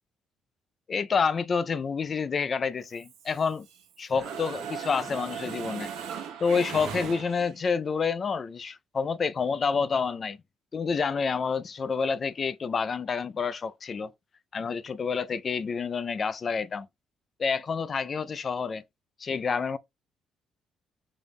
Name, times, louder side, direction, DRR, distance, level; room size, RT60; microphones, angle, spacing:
voice 1, 0.9-3.7 4.0-5.9 6.4-10.4 10.7-14.1 14.5-16.9 17.4-18.8 19.2-19.8, left 5 dB, 45° left, 0.3 m, -28 dB
Mechanisms, 2.9-3.8 4.1-7.7, right 7 dB, 80° right, 0.9 m, -38 dB
5.2 x 2.1 x 3.5 m
supercardioid pair, 70°, 0 cm